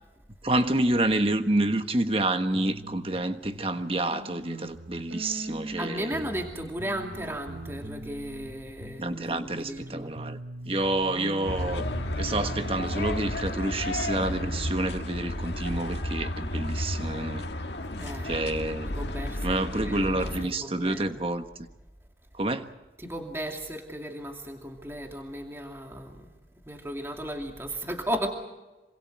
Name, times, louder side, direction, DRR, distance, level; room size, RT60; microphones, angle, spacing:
voice 1, 0.4-6.3 9.0-10.4 10.6-11.8 12.2-17.5 18.2-18.9 19.4-21.4 22.3-22.7, right 2 dB, 30° right, 1.3 m, -28 dB
sound 1, 2.5-3.2 3.4-8.5 8.8-14.8, right 1 dB, 85° right, 4.2 m, -41 dB
voice 2, 5.8-10.1 18.0-18.3 18.9-21.0 23.0-26.4 26.6-28.3, equal, 15° right, 2.5 m, -35 dB
sound 2, 11.4-20.4, left 1 dB, 80° left, 1.8 m, -32 dB
27.5 x 25.5 x 4.7 m
head